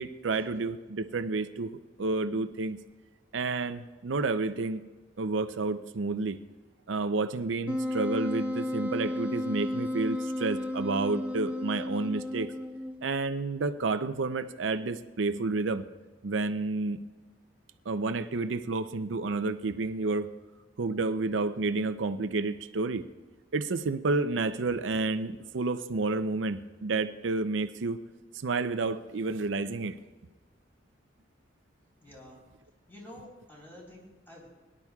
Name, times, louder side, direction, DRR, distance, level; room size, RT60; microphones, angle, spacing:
voice 1, 0.0-2.8 3.3-4.8 5.2-6.4 6.9-12.5 13.0-15.8 16.2-17.0 17.9-20.3 20.8-23.0 23.5-28.0 28.4-29.9, right 3 dB, 85° right, 10 dB, 0.6 m, -30 dB
Wind instrument woodwind instrument, 7.7-13.1, left 1 dB, 5° right, 0.9 m, -33 dB
voice 2, 32.0-32.5 32.9-34.5, left 1 dB, 15° left, -4 dB, 4.1 m, -49 dB
22.5 x 11.0 x 2.4 m, 1.4 s
head